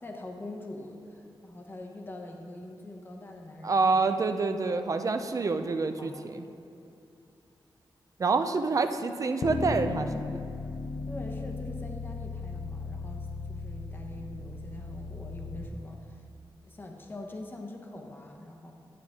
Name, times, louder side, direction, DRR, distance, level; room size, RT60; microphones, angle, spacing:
voice 1, 0.0-4.2 6.0-6.3 11.1-16.3 16.6-18.7, left 1 dB, 25° left, 2 dB, 0.9 m, -43 dB
voice 2, 3.6-6.4 8.2-10.4, right 4 dB, 40° right, 8 dB, 0.5 m, -27 dB
sound 1, 9.4-15.7, left 3 dB, 55° left, 0.6 m, -36 dB
11.0 x 7.7 x 3.6 m, 2.8 s
wide cardioid pair, 120°, 8 cm